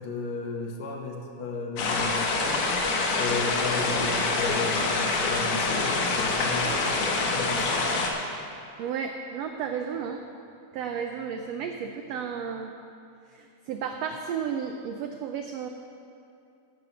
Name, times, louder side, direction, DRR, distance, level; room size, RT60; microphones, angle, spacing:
voice 1, 0.0-2.6 3.1-8.1, left 3 dB, 65° left, 0 dB, 2.3 m, -34 dB
sound 1, 1.8-8.1, left 3 dB, 85° left, 2.8 m, -26 dB
voice 2, 8.8-10.2 10.7-12.7 13.3-15.7, right 7 dB, 85° right, 5 dB, 1.4 m, -33 dB
14.5 x 6.1 x 6.9 m, 2.6 s
omnidirectional pair, 3.5 m